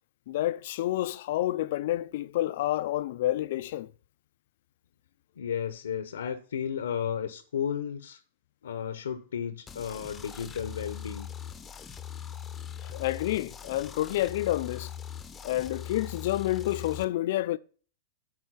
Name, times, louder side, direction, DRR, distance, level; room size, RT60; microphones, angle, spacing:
voice 1, 0.3-3.9 12.8-14.9 15.4-17.6, left 14 dB, 60° left, 0.5 m, -29 dB
voice 2, 5.4-8.2 8.6-11.3, left 8 dB, 80° left, 0.8 m, -33 dB
sound 1, 9.7-17.1, left 9 dB, 20° left, 0.9 m, -41 dB
10.5 x 4.4 x 5.7 m
hypercardioid pair, 110°, 0 cm